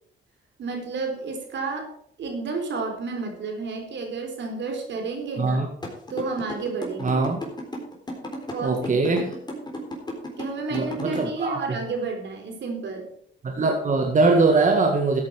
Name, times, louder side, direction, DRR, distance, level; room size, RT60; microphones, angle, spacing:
voice 1, 0.6-1.9 2.2-5.6 6.1-7.2 8.5-9.3 10.4-13.1, right 4 dB, 65° right, 3 dB, 4.0 m, -31 dB
sound 1, 5.8-11.2, left 1 dB, 20° left, 3.9 m, -33 dB
voice 2, 7.0-7.4 8.6-9.4 10.7-11.6 13.4-15.2, right 3 dB, 40° right, 3 dB, 1.8 m, -21 dB
13.5 x 8.9 x 4.8 m, 0.65 s
cardioid pair, 90°, 20 cm